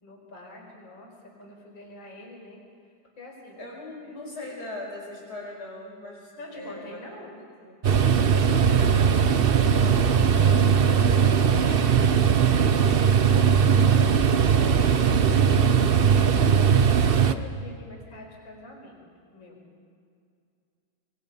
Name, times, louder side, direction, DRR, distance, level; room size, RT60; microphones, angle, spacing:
voice 1, 0.0-1.1 1.4-2.6 3.2-3.6 4.0-4.1 6.4-7.4 10.6-13.3 13.8-14.3 14.7-19.0 19.3-19.6, left 1 dB, 90° left, 0 dB, 5.8 m, -45 dB
voice 2, 3.6-7.0 7.4-7.7 8.3-10.1, left 1 dB, 55° left, -4 dB, 6.4 m, -40 dB
sound 1, 7.8-17.3, right 7 dB, 50° right, 0.6 m, -19 dB
27.0 x 22.5 x 5.5 m, 2.3 s
omnidirectional pair, 2.0 m